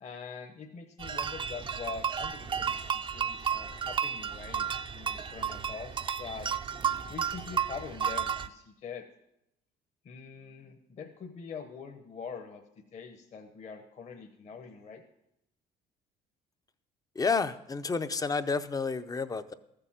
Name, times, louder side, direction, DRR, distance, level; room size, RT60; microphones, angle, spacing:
voice 1, 0.0-6.5 6.9-9.0 10.0-12.6 12.9-15.0, left 5 dB, 40° left, 4 dB, 1.0 m, -44 dB
sound 1, 1.0-8.5, right 7 dB, 30° right, 0.5 m, -33 dB
voice 2, 17.2-19.5, left 4 dB, 20° left, 12 dB, 0.6 m, -30 dB
13.5 x 6.9 x 7.4 m, 0.83 s
cardioid pair, 110°, 17 cm